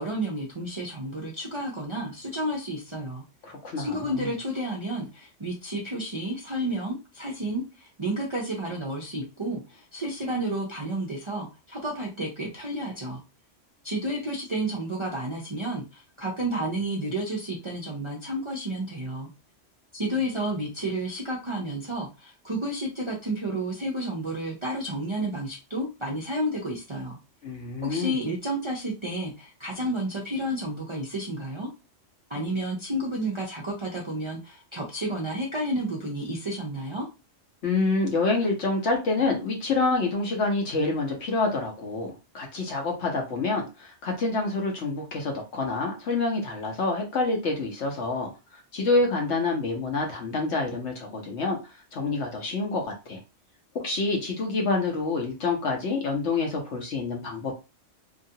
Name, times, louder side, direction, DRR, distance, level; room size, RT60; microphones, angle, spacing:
voice 1, 0.0-3.2 3.8-13.2 13.8-19.3 19.9-27.2 27.8-31.7 32.3-37.1, right 1 dB, 40° right, -3 dB, 0.4 m, -31 dB
voice 2, 3.4-4.3 27.4-28.2 37.6-51.6 51.9-53.2 53.7-57.5, left 3 dB, 65° left, 1 dB, 1.1 m, -27 dB
2.9 x 2.4 x 2.7 m, 0.29 s
omnidirectional pair, 1.3 m